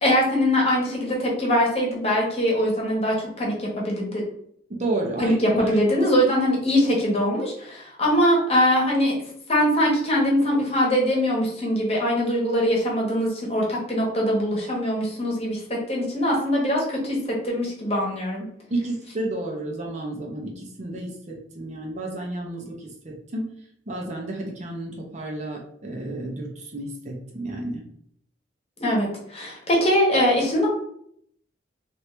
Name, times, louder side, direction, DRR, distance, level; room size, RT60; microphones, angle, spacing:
voice 1, 0.0-4.2 5.2-9.1 9.5-18.5 28.8-30.7, equal, 35° left, -2 dB, 1.1 m, -22 dB
voice 2, 4.7-5.7 18.7-23.5 23.9-27.8, right 2 dB, 40° right, 0 dB, 0.7 m, -31 dB
2.9 x 2.6 x 3.2 m, 0.68 s
head